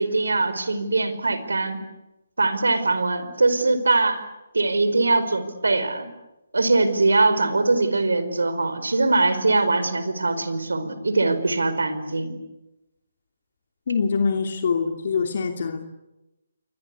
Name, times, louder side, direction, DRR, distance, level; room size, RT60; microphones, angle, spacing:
voice 1, 0.0-1.8 2.4-4.2 4.5-6.1 6.5-12.3, right 3 dB, 85° right, 11 dB, 4.8 m, -22 dB
voice 2, 13.9-15.8, left 5 dB, 55° left, 4 dB, 2.8 m, -24 dB
30.0 x 23.5 x 8.5 m, 0.98 s
hypercardioid pair, 150°, 0 cm